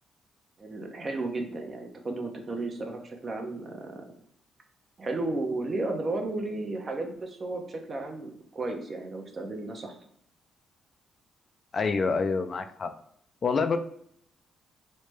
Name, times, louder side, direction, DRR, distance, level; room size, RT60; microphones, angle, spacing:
voice 1, 0.6-4.1 5.0-9.9, right 2 dB, 40° right, 3 dB, 0.6 m, -33 dB
voice 2, 11.7-12.9 13.4-13.8, left 4 dB, 50° left, 9 dB, 0.3 m, -26 dB
3.2 x 2.0 x 3.2 m, 0.65 s
supercardioid pair, 60°, 0 cm